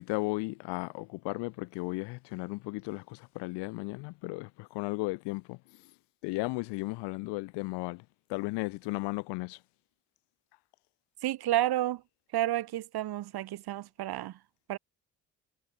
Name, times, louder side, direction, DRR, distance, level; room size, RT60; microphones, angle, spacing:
voice 1, 0.0-5.6 6.2-8.0 8.3-9.6, left 25 dB, 80° left, 0.9 m, -35 dB
voice 2, 11.2-12.0 12.3-14.4 14.7-14.8, right 14 dB, 65° right, 1.3 m, -30 dB
hypercardioid pair, 55°, 41 cm